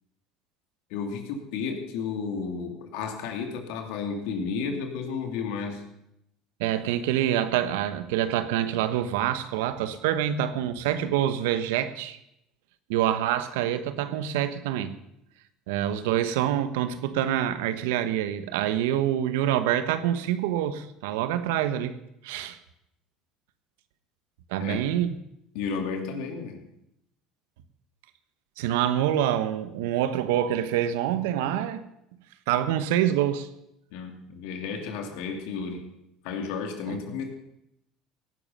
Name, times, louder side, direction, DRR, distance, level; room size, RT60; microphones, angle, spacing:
voice 1, 0.9-5.8 24.6-24.9 25.5-26.6 33.9-35.8 36.2-37.3, left 5 dB, 75° left, 4 dB, 2.9 m, -32 dB
voice 2, 6.6-12.2 12.9-14.9 15.7-22.0 22.2-22.6 24.5-25.1 28.6-31.8 32.5-33.5 36.9-37.0, right 11 dB, 80° right, 12 dB, 1.2 m, -26 dB
17.5 x 11.0 x 5.7 m, 0.81 s
hypercardioid pair, 80°, 0 cm